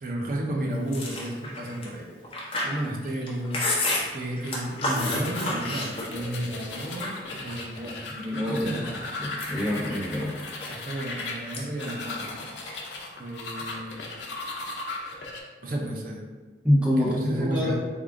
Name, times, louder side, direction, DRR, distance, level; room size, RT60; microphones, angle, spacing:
voice 1, 0.0-2.1 2.6-3.6 4.1-8.1 8.5-9.0 9.5-9.8 10.7-12.3 13.2-14.1 15.6-16.3 17.0-17.8, right 1 dB, 50° right, -1 dB, 0.5 m, -32 dB
Chewing mastication, 0.9-6.4 6.7-7.8 8.3-8.9 9.2-11.2 11.5-11.9 12.1-13.0, left 2 dB, 30° left, 0.6 m, -31 dB
sound 1, 4.4-15.4, left 3 dB, 75° left, 0.5 m, -37 dB
voice 2, 8.1-8.8 9.2-10.3 13.5-13.6 16.6-17.8, left 1 dB, 5° right, -6 dB, 0.7 m, -26 dB
3.6 x 2.4 x 3.5 m, 1.4 s
head